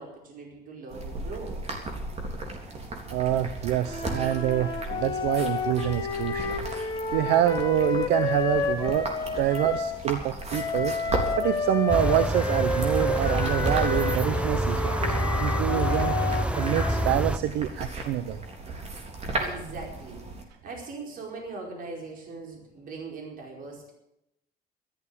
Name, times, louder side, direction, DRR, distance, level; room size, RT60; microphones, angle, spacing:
voice 1, 0.0-1.8 19.4-23.9, right 3 dB, 55° right, 1 dB, 4.8 m, -40 dB
sound 1, 0.9-20.4, right 2 dB, 40° right, 3.6 m, -36 dB
voice 2, 3.1-6.6 7.1-9.1 9.4-10.9 11.4-15.0 15.4-16.1 16.6-18.4, right 12 dB, 90° right, 12 dB, 0.8 m, -26 dB
sound 2, 3.9-9.9 10.5-17.2, left 4 dB, 25° left, 3.7 m, -30 dB
sound 3, 11.9-17.4, right 1 dB, 5° right, 0.8 m, -27 dB
13.5 x 11.5 x 8.7 m, 0.83 s
cardioid pair, 110°, 17 cm